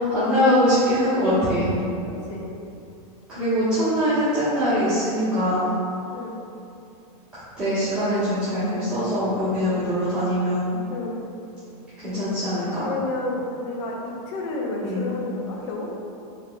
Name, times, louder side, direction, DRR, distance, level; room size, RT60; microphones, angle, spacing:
voice 1, 0.0-1.7 3.3-5.7 7.6-10.7 12.0-12.8 14.8-15.1, equal, 5° right, -20 dB, 1.3 m, -22 dB
voice 2, 2.0-2.5 6.1-6.3 10.9-11.2 12.8-15.9, left 2 dB, 50° left, -1 dB, 0.7 m, -30 dB
4.7 x 4.0 x 2.3 m, 2.6 s
supercardioid pair, 175°, 20 cm